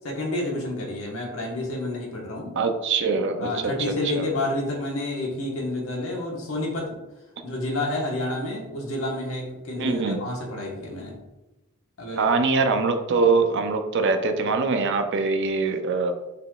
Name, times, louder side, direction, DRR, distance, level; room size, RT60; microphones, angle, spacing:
voice 1, 0.0-2.5 3.4-6.9 7.4-11.2 12.0-12.3, left 1 dB, 75° left, -1 dB, 1.3 m, -29 dB
voice 2, 2.5-3.7 4.1-4.3 9.8-10.3 12.2-16.1, right 4 dB, 60° right, 6 dB, 0.5 m, -23 dB
5.5 x 3.8 x 2.4 m, 1.0 s
head